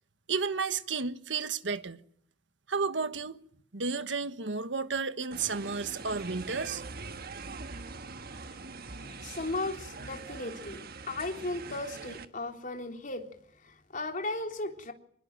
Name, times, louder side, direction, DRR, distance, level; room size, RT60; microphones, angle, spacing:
voice 1, 0.3-2.0 2.7-3.4 3.7-6.8, right 5 dB, 75° right, 1.4 m, -32 dB
sound 1, 5.3-12.3, right 4 dB, 55° right, 1.5 m, -43 dB
voice 2, 9.0-13.3 13.6-14.9, left 2 dB, 45° left, 3.6 m, -36 dB
26.5 x 21.5 x 9.1 m
head